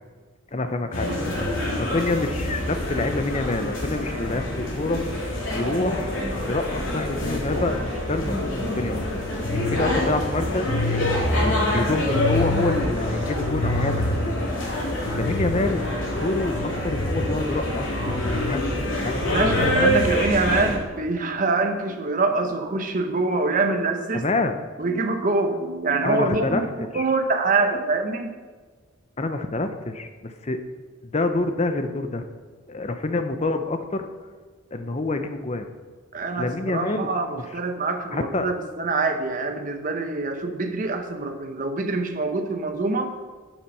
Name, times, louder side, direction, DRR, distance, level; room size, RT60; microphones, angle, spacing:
voice 1, 0.5-1.1 1.4-1.5 1.8-5.0 5.5-6.1 6.5-9.1 9.6-11.2 11.7-14.3 15.1-15.8 16.1-19.9 24.1-24.6 26.0-26.6 26.9-27.1 29.2-30.6 31.0-32.3 32.7-34.1 34.7-35.7 36.4-37.1 38.1-38.5, left 2 dB, 30° left, 8 dB, 0.7 m, -27 dB
sound 1, 0.9-20.8, left 1 dB, 70° left, 3.0 m, -25 dB
voice 2, 19.3-24.3 24.8-28.3 36.1-43.1, right 3 dB, 40° right, 5 dB, 0.9 m, -25 dB
8.5 x 7.3 x 6.2 m, 1.4 s
head